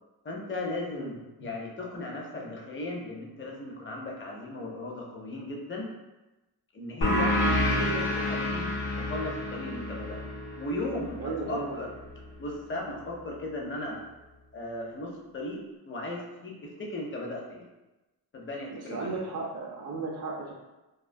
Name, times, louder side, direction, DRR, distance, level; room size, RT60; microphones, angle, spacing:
voice 1, 0.2-5.9 6.7-7.4 7.7-8.7 9.0-10.2 10.6-11.9 12.4-14.0 14.5-17.7 18.3-19.1, left 2 dB, 30° left, -2 dB, 0.5 m, -36 dB
sound 1, 7.0-12.2, left 1 dB, 70° left, 0.7 m, -29 dB
voice 2, 11.2-11.8 18.7-20.5, right 3 dB, 40° right, -3 dB, 0.4 m, -35 dB
2.3 x 2.3 x 2.5 m, 1.0 s
wide cardioid pair, 135°, 40 cm